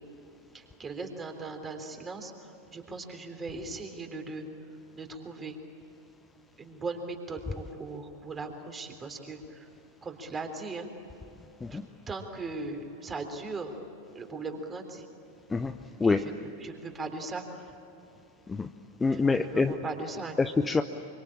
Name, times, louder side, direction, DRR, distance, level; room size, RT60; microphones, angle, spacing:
voice 1, 0.5-4.5 4.9-5.6 6.6-9.7 10.0-10.9 11.7-11.8 12.1-13.8 14.2-15.0 16.0-16.3 16.6-17.7 19.1-20.4, right 3 dB, 20° right, 5 dB, 3.5 m, -38 dB
voice 2, 15.5-16.3 18.5-18.7 19.0-19.7 20.4-20.8, left 4 dB, 15° left, 8 dB, 0.8 m, -26 dB
26.0 x 24.5 x 8.8 m, 2.8 s
figure-of-eight pair, 90°, 0 cm